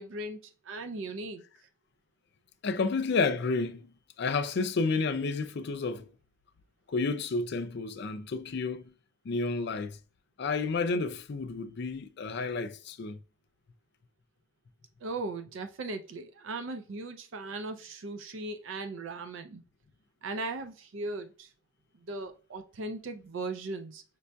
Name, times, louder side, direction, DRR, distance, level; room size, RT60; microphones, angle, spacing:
voice 1, 0.0-1.5 15.0-19.6 20.2-21.5 22.0-24.0, right 2 dB, 70° right, 0.4 m, -38 dB
voice 2, 2.6-6.1 6.9-8.9 9.2-10.0 10.4-13.2, left 4 dB, 55° left, 0.4 m, -31 dB
5.2 x 2.6 x 2.2 m
head